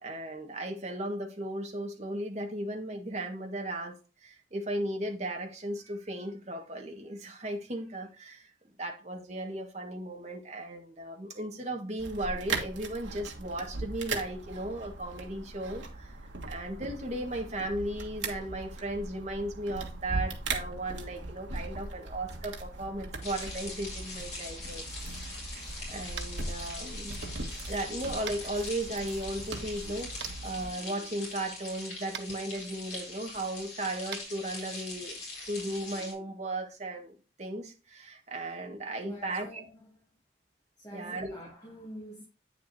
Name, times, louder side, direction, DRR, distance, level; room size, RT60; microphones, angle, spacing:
voice 1, 0.0-8.5 8.8-16.1 16.5-24.8 25.2-25.5 25.9-27.2 27.7-35.2 35.5-39.6 40.9-41.3, right 1 dB, 35° right, 1.5 m, -36 dB
sound 1, 12.0-30.7, right 3 dB, 85° right, 1.6 m, -39 dB
sound 2, 23.2-36.1, left 2 dB, 40° left, 3.7 m, -42 dB
Tap, 26.1-26.4 28.2-28.4 30.2-30.3 32.1-32.3 34.1-34.2, right 8 dB, 65° right, 0.8 m, -40 dB
voice 2, 39.0-40.2 40.8-42.2, equal, 20° left, 2.5 m, -47 dB
8.6 x 6.7 x 2.7 m
head